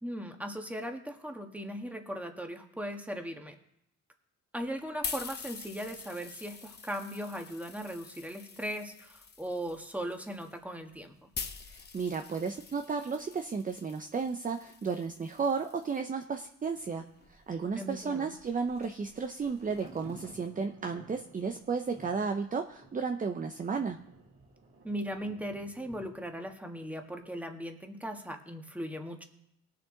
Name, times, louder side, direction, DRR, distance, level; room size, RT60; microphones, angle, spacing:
voice 1, 0.0-3.5 4.5-11.3 17.7-18.3 24.8-29.2, equal, 5° right, 4 dB, 1.6 m, -38 dB
sound 1, 4.6-16.0 16.8-20.3, left 5 dB, 35° left, 1.1 m, -46 dB
voice 2, 11.7-24.0, right 5 dB, 25° right, 6 dB, 0.7 m, -33 dB
Thunder, 16.7-27.6 27.9-28.0, right 2 dB, 50° right, 3.7 m, -56 dB
19.5 x 6.8 x 3.9 m, 0.79 s
cardioid pair, 90°, 30 cm